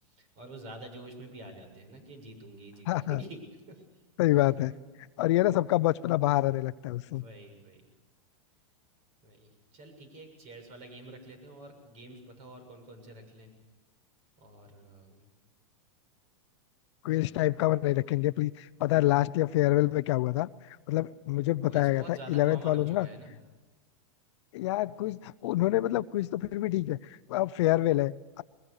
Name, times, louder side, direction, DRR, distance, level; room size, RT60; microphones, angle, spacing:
voice 1, 0.0-3.8 4.7-4.9 7.0-7.9 9.2-13.5 14.4-15.3 21.0-21.1 21.7-23.4, right 1 dB, 45° right, 7 dB, 7.1 m, -48 dB
voice 2, 2.9-3.2 4.2-4.7 5.2-7.2 17.0-20.5 20.9-23.1 24.5-28.4, left 16 dB, 60° left, 16 dB, 0.7 m, -27 dB
21.5 x 21.5 x 6.6 m, 1.2 s
supercardioid pair, 140°, 17 cm